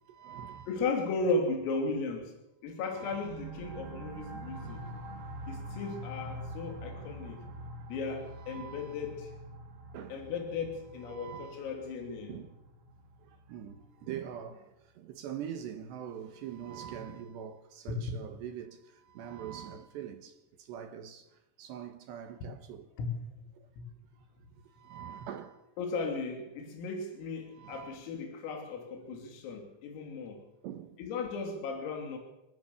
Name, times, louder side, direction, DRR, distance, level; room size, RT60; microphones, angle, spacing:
voice 1, 0.1-0.7 2.9-3.3 8.4-9.0 9.9-10.2 11.1-11.7 12.3-12.6 13.2-21.3 21.6-22.9 23.6-23.7 24.7-25.6 27.5-28.0 30.6-31.0, right 9 dB, 70° right, 3.2 m, -43 dB
voice 2, 0.7-2.3 2.6-4.9 5.5-7.4 7.9-9.3 10.1-12.3 18.0-18.1 23.0-23.1 23.8-23.9 25.8-30.4 31.0-32.2, left 3 dB, 85° left, 5.6 m, -35 dB
sound 1, 3.1-14.4, right 1 dB, 85° right, 5.4 m, -45 dB
26.5 x 19.0 x 7.2 m
omnidirectional pair, 5.9 m